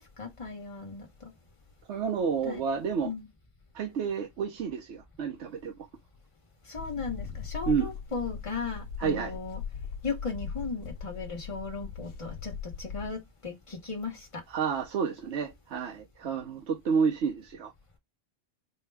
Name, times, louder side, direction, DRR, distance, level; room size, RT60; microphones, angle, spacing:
voice 1, 0.0-1.3 2.4-2.6 3.0-3.3 6.7-9.6 10.0-14.4, left 4 dB, 25° left, 1.0 m, -37 dB
voice 2, 1.9-3.1 3.7-5.7 7.7-7.9 9.0-9.4 14.5-17.7, right 6 dB, 70° right, 0.9 m, -30 dB
sound 1, 6.8-13.2, left 7 dB, 85° left, 1.0 m, -39 dB
4.5 x 2.2 x 3.3 m
omnidirectional pair, 1.3 m